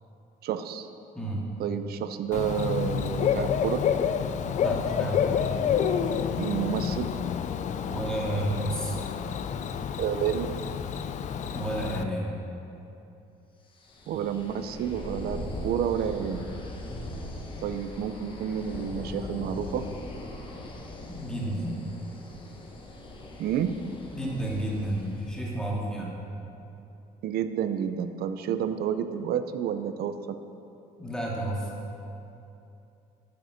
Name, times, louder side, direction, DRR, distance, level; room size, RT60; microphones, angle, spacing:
voice 1, 0.4-0.9 1.6-3.8 6.4-7.1 10.0-10.5 14.1-16.5 17.6-19.9 23.4-23.7 27.2-30.4, right 9 dB, 65° right, 10 dB, 0.6 m, -30 dB
voice 2, 1.1-1.5 4.6-5.5 7.8-9.1 11.4-12.3 21.0-21.8 24.1-26.2 31.0-31.7, right 1 dB, 5° left, -4 dB, 2.1 m, -31 dB
Bird / Cricket, 2.3-12.0, left 8 dB, 45° left, 0.5 m, -29 dB
sound 1, 13.8-25.5, left 1 dB, 30° left, 1.4 m, -40 dB
9.4 x 6.6 x 6.5 m, 2.8 s
cardioid pair, 110°, 17 cm